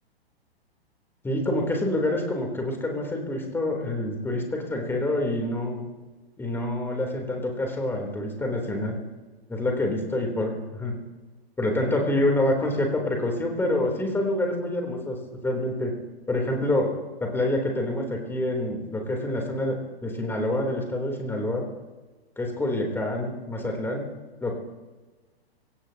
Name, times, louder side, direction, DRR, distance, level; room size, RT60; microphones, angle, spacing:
voice 1, 1.2-5.9 6.4-9.0 9.5-11.0 11.6-15.2 15.4-15.9 16.3-16.9 17.2-19.8 20.0-21.6 22.4-24.0 24.4-24.5, left 1 dB, 5° left, 1 dB, 3.4 m, -27 dB
25.5 x 16.5 x 2.9 m, 1.2 s
figure-of-eight pair, 110°, 32 cm